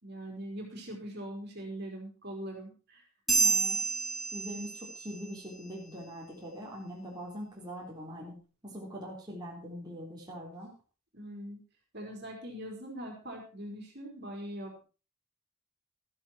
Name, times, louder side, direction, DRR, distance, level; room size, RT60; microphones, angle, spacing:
voice 1, 0.0-3.0 11.1-11.6 11.9-14.8, right 1 dB, 50° right, 1 dB, 4.2 m, -42 dB
sound 1, 3.3-5.1, right 4 dB, ahead, 2.1 m, -29 dB
voice 2, 3.3-3.9 4.3-8.4 8.6-10.7, equal, 20° right, -4 dB, 3.8 m, -42 dB
13.5 x 11.5 x 4.4 m, 0.34 s
head